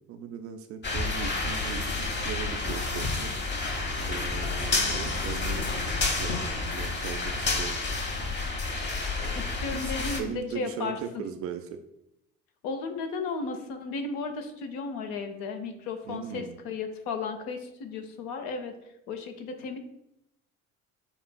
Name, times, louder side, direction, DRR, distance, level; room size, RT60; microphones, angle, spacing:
voice 1, 0.1-3.3 4.1-7.8 9.7-11.7 16.1-16.6, right 8 dB, 35° right, 7 dB, 0.4 m, -39 dB
sound 1, 0.8-10.2, left 3 dB, 25° left, 0.8 m, -30 dB
voice 2, 9.3-11.2 12.6-18.7 19.1-19.8, left 4 dB, 55° left, 6 dB, 0.7 m, -34 dB
6.8 x 2.4 x 2.2 m, 0.84 s
figure-of-eight pair, 60°, 41 cm